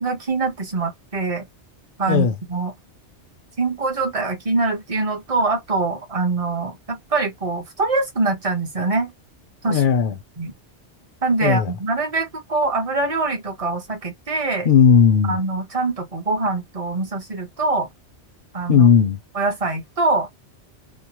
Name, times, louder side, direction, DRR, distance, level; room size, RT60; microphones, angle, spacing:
voice 1, 0.0-1.5 2.0-2.7 3.6-9.1 9.6-9.8 10.4-10.5 11.2-14.7 15.3-17.9 18.5-18.9 19.3-20.3, right 3 dB, 35° right, 0.9 m, -24 dB
voice 2, 9.7-10.2 11.4-11.7 14.6-15.4 18.7-19.2, left 7 dB, 60° left, 0.6 m, -15 dB
2.9 x 2.0 x 2.9 m
omnidirectional pair, 1.2 m